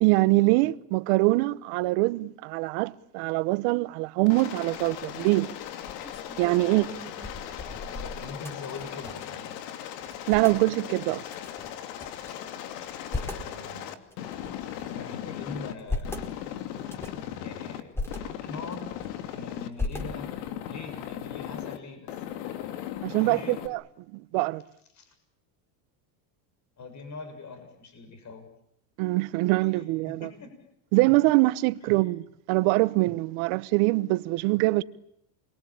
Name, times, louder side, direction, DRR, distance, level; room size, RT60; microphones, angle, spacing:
voice 1, 0.0-5.5 6.4-6.9 10.3-11.2 23.0-23.8 24.1-24.6 29.0-30.3 30.9-34.8, right 22 dB, 65° right, 1.3 m, -24 dB
Aircraft, 4.3-15.7 16.0-17.8 18.1-19.7 20.0-21.8 22.1-23.7, left 11 dB, 80° left, 2.7 m, -38 dB
sound 1, 4.8-5.1 5.6-9.4 9.6-9.7 10.0-10.6 11.3-12.3 12.8-13.5 14.1-15.1 15.6-16.3 16.8-17.3 17.7-18.2 18.7-19.3 19.8-20.5, left 2 dB, 5° left, 4.8 m, -37 dB
voice 2, 6.6-9.6 12.9-13.0 13.3-14.0 14.8-16.2 17.3-18.9 19.3-20.3 20.6-22.2 23.2-23.6 25.0-25.2 26.8-28.5 29.7-29.8 30.2-30.5, left 3 dB, 35° left, 7.2 m, -43 dB
29.0 x 22.5 x 8.9 m
supercardioid pair, 115°, 49 cm